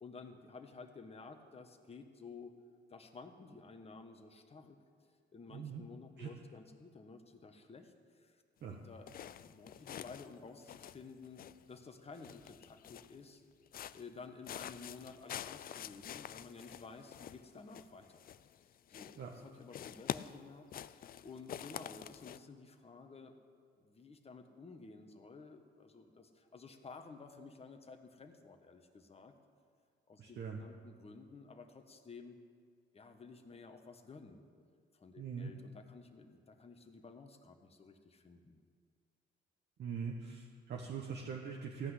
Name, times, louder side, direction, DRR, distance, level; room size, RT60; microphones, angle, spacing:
voice 1, 0.0-2.5 2.9-4.8 5.3-8.4 8.7-13.4 13.9-18.2 18.9-19.1 19.4-23.3 23.8-29.3 30.1-32.4 32.9-34.4 34.9-38.6, left 4 dB, 30° left, 5 dB, 1.3 m, -53 dB
voice 2, 5.5-5.8 6.2-6.3 8.6-8.8 19.2-19.3 30.2-30.6 35.2-35.5 39.8-41.9, right 6 dB, 60° right, 0 dB, 1.2 m, -42 dB
sound 1, 9.1-10.4 10.6-11.8 12.1-13.2 13.7-14.2 14.4-18.6 18.9-19.4 19.7-22.4, left 10 dB, 50° left, 0.4 m, -47 dB
15.0 x 5.9 x 9.9 m, 2.1 s
cardioid pair, 90°, 20 cm